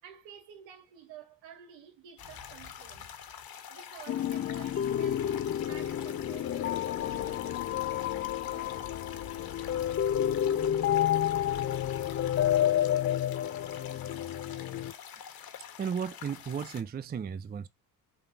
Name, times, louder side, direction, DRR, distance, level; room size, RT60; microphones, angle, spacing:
voice 1, 0.0-3.1 3.7-9.1, right 8 dB, 65° right, 2.4 m, -52 dB
sound 1, 2.2-16.8, left 8 dB, 45° left, 1.7 m, -46 dB
sound 2, 4.1-14.9, left 11 dB, 30° left, 0.5 m, -30 dB
sound 3, 7.0-12.6, left 10 dB, 80° left, 1.7 m, -49 dB
voice 2, 15.8-17.7, right 7 dB, 20° right, 0.5 m, -34 dB
5.3 x 4.0 x 6.0 m
hypercardioid pair, 60°, 49 cm